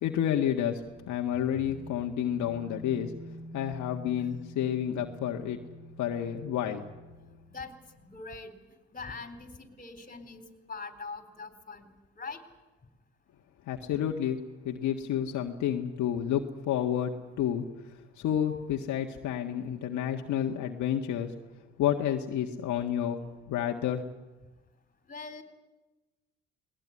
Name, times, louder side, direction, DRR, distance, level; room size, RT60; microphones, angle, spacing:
voice 1, 0.0-3.1 3.5-5.6 6.0-6.9 13.7-17.7 18.2-21.3 21.8-24.0, left 10 dB, 60° left, 2 dB, 1.7 m, -30 dB
sound 1, 0.8-8.2, equal, 25° right, 6.5 m, -48 dB
voice 2, 8.0-8.5 8.9-10.4 10.7-11.9 12.2-12.4 25.1-25.4, left 4 dB, 25° left, 9 dB, 3.9 m, -42 dB
21.0 x 19.5 x 9.7 m, 1.1 s
supercardioid pair, 75°, 32 cm